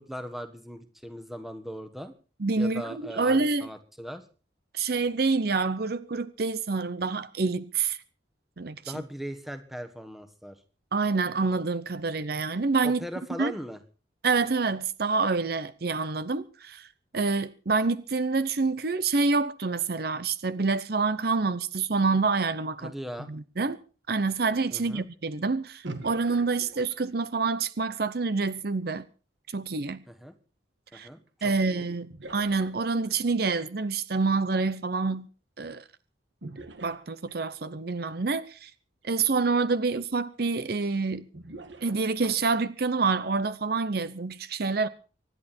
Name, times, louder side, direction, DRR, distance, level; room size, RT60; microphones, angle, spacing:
voice 1, 0.0-2.1 2.5-4.2 8.8-10.6 12.8-13.8 22.8-23.3 24.7-25.1 30.1-30.4 30.9-31.9, equal, ahead, 1.5 m, -39 dB
voice 2, 2.4-3.7 4.7-8.0 8.6-9.0 10.9-13.0 13.4-13.5 14.2-16.9 17.1-22.9 23.3-23.8 24.1-29.1 29.5-30.0 30.9-31.1 31.4-35.3 35.6-35.8 36.8-38.7 39.0-41.3 41.8-44.9, right 4 dB, 55° right, 0.7 m, -27 dB
sound 1, 25.8-27.3 31.3-31.4 32.1-33.3 36.4-37.7 39.0-39.1 39.6-39.7 41.3-42.6, right 2 dB, 75° right, 1.9 m, -43 dB
24.5 x 11.0 x 4.4 m
head